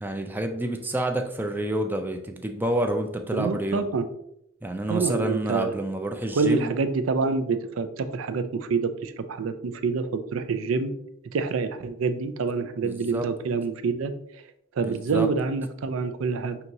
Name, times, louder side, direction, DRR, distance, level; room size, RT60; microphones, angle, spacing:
voice 1, 0.0-3.9 4.6-6.7 12.8-13.3 14.8-15.3, right 1 dB, 10° right, 5 dB, 0.3 m, -28 dB
voice 2, 3.3-4.1 4.9-5.7 6.4-10.9 11.3-14.4 14.8-16.6, right 4 dB, 85° right, 10 dB, 0.4 m, -27 dB
5.8 x 2.8 x 2.6 m, 0.76 s
head